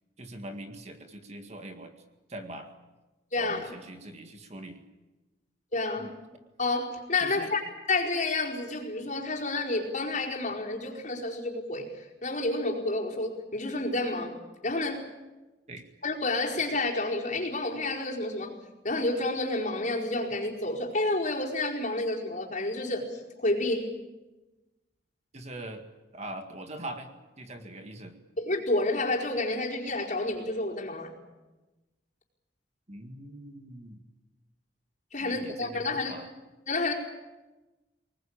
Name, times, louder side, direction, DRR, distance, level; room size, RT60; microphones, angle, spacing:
voice 1, 0.2-2.0 2.3-2.7 3.4-4.8 6.0-6.1 7.2-7.5 15.7-15.9 25.3-25.8 26.1-27.1 27.4-28.2 32.9-34.0 35.2-36.3, right 1 dB, 40° right, 6 dB, 2.0 m, -42 dB
voice 2, 3.3-3.7 5.7-6.1 6.6-7.6 7.9-14.3 14.6-15.1 16.0-18.6 18.8-23.9 28.4-31.1 35.1-36.1 36.7-36.9, left 2 dB, 45° left, -2 dB, 4.7 m, -30 dB
25.0 x 20.0 x 8.8 m, 1.1 s
head